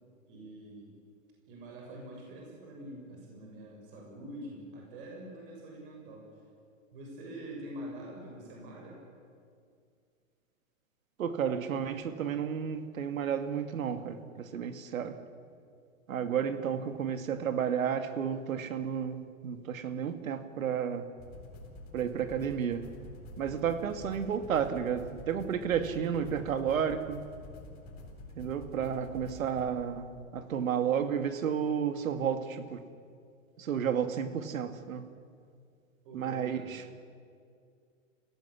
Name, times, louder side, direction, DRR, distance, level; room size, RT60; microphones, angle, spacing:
voice 1, 0.3-1.0 1.5-6.3 6.9-9.0 36.0-36.8, right 1 dB, 40° right, -1 dB, 6.9 m, -45 dB
voice 2, 11.2-15.2 16.1-21.1 21.9-22.9 23.4-27.3 28.4-32.8 33.6-35.1 36.1-36.8, right 8 dB, 80° right, 9 dB, 2.3 m, -32 dB
sound 1, 21.2-30.8, left 2 dB, 25° left, 4.0 m, -48 dB
28.5 x 17.5 x 9.9 m, 2.3 s
hypercardioid pair, 165°, 40 cm